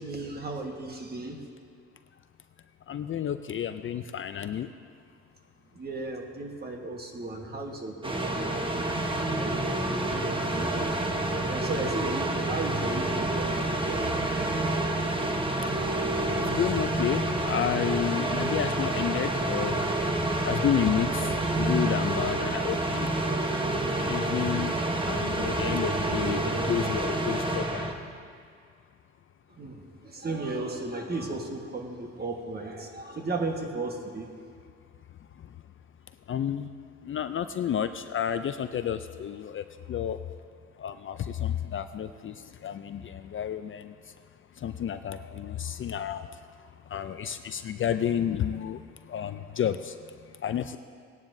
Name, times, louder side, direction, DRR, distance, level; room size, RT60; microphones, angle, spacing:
voice 1, 0.0-1.4 5.7-8.9 9.3-9.8 10.1-11.0 11.5-14.4 15.5-15.8 16.3-16.6 29.6-34.3, right 2 dB, 30° right, 2 dB, 1.5 m, -35 dB
voice 2, 2.9-4.7 16.5-19.7 20.4-21.1 21.6-23.1 24.0-24.7 25.1-27.9 36.3-36.7 37.1-39.6 39.9-40.2 40.8-42.3 42.6-43.8 44.6-46.2 46.9-48.8 49.1-49.8 50.4-50.8, left 9 dB, 45° left, 10 dB, 0.4 m, -30 dB
sound 1, 8.0-27.9, right 2 dB, 15° right, 1.0 m, -28 dB
18.0 x 10.5 x 2.7 m, 2.1 s
cardioid pair, 90°, 30 cm